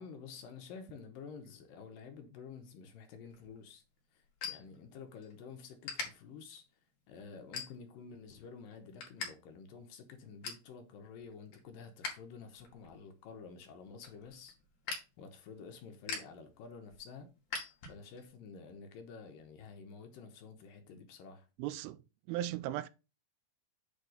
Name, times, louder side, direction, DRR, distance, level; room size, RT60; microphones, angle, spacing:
voice 1, 0.0-3.8 4.1-6.7 7.1-14.6 15.2-17.3 17.9-21.5, left 5 dB, 70° left, 2.7 m, -50 dB
sound 1, 3.3-5.3 5.6-6.1 6.6-6.9 7.4-8.1 8.5-9.3 9.6-9.7 10.1-10.7 11.2-12.1 12.5-18.3, left 4 dB, 55° left, 3.2 m, -44 dB
voice 2, 21.6-22.0 22.3-22.9, right 13 dB, 85° right, 2.4 m, -37 dB
8.4 x 3.7 x 5.1 m
omnidirectional pair, 4.4 m